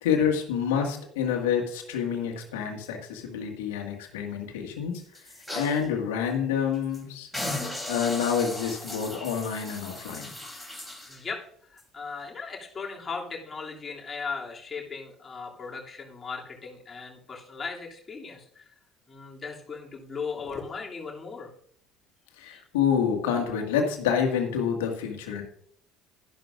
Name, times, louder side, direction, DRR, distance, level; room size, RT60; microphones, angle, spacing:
voice 1, 0.0-4.9 5.5-7.3 7.9-10.3 22.4-25.4, left 7 dB, 75° left, 2 dB, 1.9 m, -28 dB
sound 1, 4.9-5.8 6.3-6.4 6.7-7.0 7.3-11.2 11.8-11.9, left 1 dB, 5° right, 4.0 m, -36 dB
voice 2, 11.1-11.5 11.7-18.7 19.1-21.5 22.4-22.6, left 5 dB, 30° left, -1 dB, 2.7 m, -37 dB
12.0 x 11.5 x 2.5 m, 0.63 s
hypercardioid pair, 60°, 0 cm